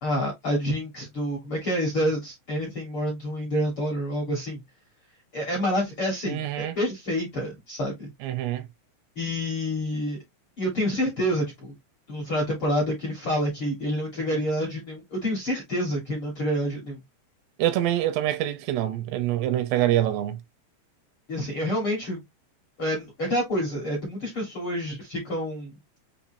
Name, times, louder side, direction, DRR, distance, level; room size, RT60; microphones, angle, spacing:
voice 1, 0.0-4.6 5.3-8.1 9.1-10.2 10.6-11.7 12.1-17.0 21.3-22.2 22.8-25.7, equal, 60° left, 1.4 m, -28 dB
voice 2, 6.3-6.8 8.2-8.6 17.6-20.4, right 13 dB, 80° right, 2.6 m, -25 dB
7.0 x 2.6 x 2.6 m
omnidirectional pair, 4.9 m